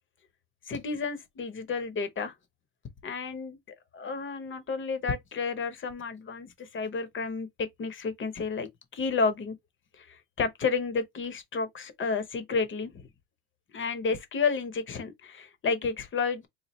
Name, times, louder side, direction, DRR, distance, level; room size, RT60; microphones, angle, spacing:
voice 1, 0.7-2.3 3.0-3.6 3.9-9.5 9.9-13.1 13.7-16.5, left 4 dB, 25° left, 0.7 m, -31 dB
4.3 x 2.3 x 3.0 m
cardioid pair, 145°, 48 cm